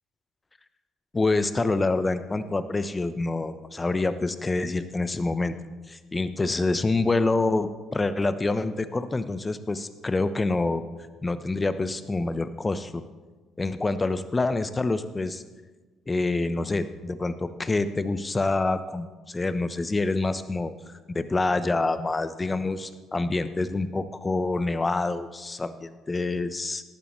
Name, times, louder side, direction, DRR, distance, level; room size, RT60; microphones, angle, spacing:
voice 1, 1.1-5.5 5.9-10.8 11.2-13.0 13.6-15.4 16.1-20.7 21.1-26.8, left 3 dB, 25° left, 12 dB, 1.0 m, -26 dB
18.0 x 12.5 x 3.3 m, 1.3 s
hypercardioid pair, 50°, 0 cm